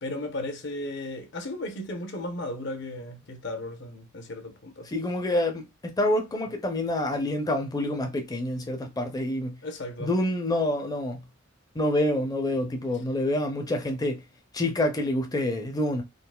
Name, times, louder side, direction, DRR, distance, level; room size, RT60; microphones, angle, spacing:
voice 1, 0.0-4.9 9.6-10.2, left 1 dB, 60° left, 0.8 m, -35 dB
voice 2, 4.9-9.6 10.0-11.2 11.8-14.2 14.5-16.0, left 1 dB, 20° left, 0.5 m, -27 dB
3.8 x 2.4 x 2.2 m
head